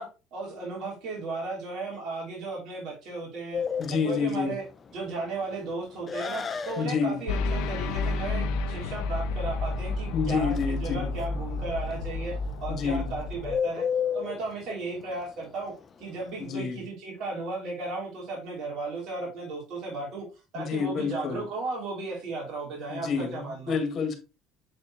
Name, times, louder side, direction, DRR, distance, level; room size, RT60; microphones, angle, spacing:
voice 1, 0.0-3.6 4.0-4.6 4.9-10.5 10.8-12.4 12.6-13.9 14.1-15.7 16.0-20.3 20.5-23.8, right 3 dB, 60° right, 3.4 m, -35 dB
Bird, 3.5-16.5, left 7 dB, 30° left, 0.7 m, -35 dB
voice 2, 3.8-4.6 6.8-7.2 10.1-11.2 12.7-13.1 16.4-16.9 20.5-21.5 22.9-24.2, left 5 dB, 45° left, 1.8 m, -29 dB
sound 1, 7.3-13.6, left 3 dB, 75° left, 0.7 m, -31 dB
7.5 x 4.2 x 3.1 m
supercardioid pair, 100°, 0 cm